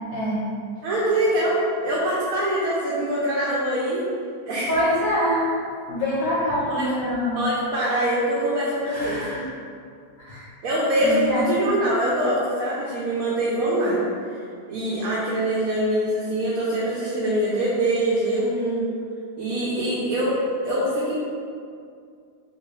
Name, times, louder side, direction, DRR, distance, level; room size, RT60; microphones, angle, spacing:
voice 1, 0.1-0.4 4.7-5.5 5.9-7.4 8.8-9.5 10.3-10.4 11.0-11.7 12.0-12.1, left 1 dB, 65° left, -8 dB, 0.9 m, -25 dB
voice 2, 0.8-4.1 4.4-4.7 6.7-6.9 7.3-9.2 10.6-14.1 14.7-18.9 19.4-21.1, right 1 dB, 70° right, -8 dB, 1.0 m, -24 dB
2.8 x 2.8 x 3.1 m, 2.3 s
omnidirectional pair, 1.7 m